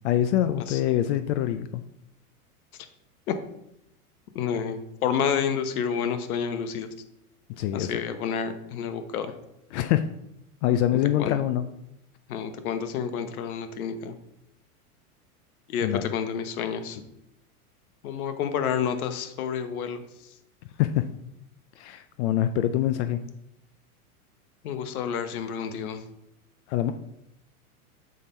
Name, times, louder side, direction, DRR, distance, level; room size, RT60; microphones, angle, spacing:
voice 1, 0.0-1.8 7.6-8.0 9.7-10.0 10.6-11.6 15.8-16.1 20.8-21.1 21.8-23.2 26.7-26.9, left 12 dB, 50° left, 10 dB, 0.5 m, -24 dB
voice 2, 4.3-6.9 7.7-9.3 10.9-11.4 12.3-14.1 15.7-17.0 18.0-20.0 24.6-26.0, left 7 dB, 70° left, 9 dB, 1.0 m, -29 dB
6.5 x 5.1 x 4.3 m, 0.81 s
hypercardioid pair, 125°, 45 cm